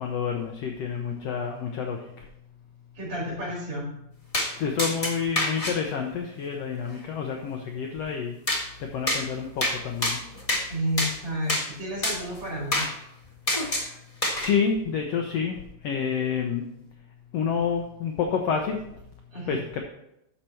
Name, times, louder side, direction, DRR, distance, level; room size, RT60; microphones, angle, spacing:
voice 1, 0.0-2.2 4.6-8.3 8.8-10.2 14.3-16.7 17.3-18.8 19.5-19.8, left 6 dB, 70° left, 3 dB, 1.6 m, -28 dB
voice 2, 2.9-3.9 10.7-12.8 19.3-19.6, equal, 35° right, -5 dB, 5.0 m, -31 dB
sound 1, 4.3-4.5 4.8-5.7 8.5-8.6 9.1-9.2 9.6-9.8 10.0-10.6 11.0-11.1 11.5-11.6 12.0-12.2 12.7-12.9 13.5-13.9 14.2-14.5, left 1 dB, 25° left, 0.7 m, -26 dB
10.0 x 6.6 x 4.4 m, 0.81 s
omnidirectional pair, 3.6 m